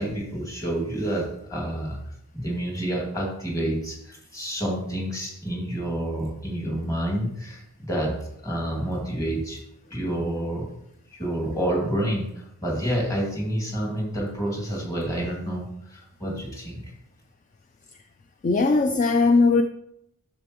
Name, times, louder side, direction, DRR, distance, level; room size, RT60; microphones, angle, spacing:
voice 1, 0.0-2.0 2.3-9.6 9.9-10.7 11.1-16.8, right 1 dB, 15° left, -2 dB, 2.4 m, -29 dB
voice 2, 18.4-19.6, left 3 dB, 35° left, 7 dB, 0.4 m, -19 dB
11.0 x 6.8 x 3.0 m, 0.77 s
head